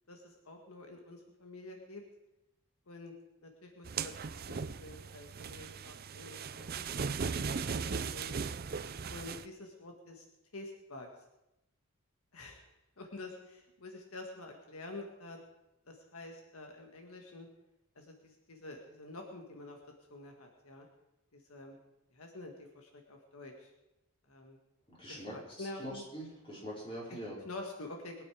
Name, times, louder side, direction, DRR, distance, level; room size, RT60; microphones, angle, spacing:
voice 1, 0.1-2.0 2.9-3.1 3.4-7.2 7.4-8.3 9.1-10.3 10.5-11.1 12.3-12.6 13.0-15.4 15.9-17.5 18.0-19.8 20.1-20.9 21.3-21.8 22.1-23.7 24.3-24.6 25.1-26.0 27.1-27.2 27.5-28.1, left 2 dB, 75° left, 2 dB, 1.7 m, -48 dB
sound 1, 3.9-9.5, right 5 dB, 45° right, 0.5 m, -38 dB
voice 2, 24.9-27.4, equal, 25° left, -5 dB, 5.3 m, -44 dB
21.5 x 9.0 x 5.0 m, 0.93 s
head